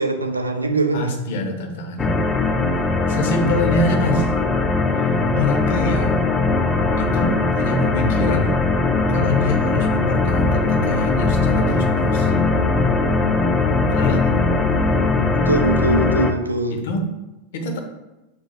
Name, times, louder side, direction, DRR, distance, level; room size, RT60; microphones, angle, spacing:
voice 1, 0.0-1.2 15.3-16.8, right 2 dB, 80° right, 5 dB, 0.4 m, -22 dB
voice 2, 0.9-2.2 3.1-4.3 5.0-6.2 7.0-8.5 9.1-12.3 13.9-14.3 16.7-17.1 17.5-17.8, left 2 dB, 55° left, 2 dB, 0.7 m, -25 dB
sound 1, 2.0-16.3, left 3 dB, 15° left, 0.4 m, -19 dB
5.9 x 2.0 x 3.0 m, 0.99 s
figure-of-eight pair, 90°, 0 cm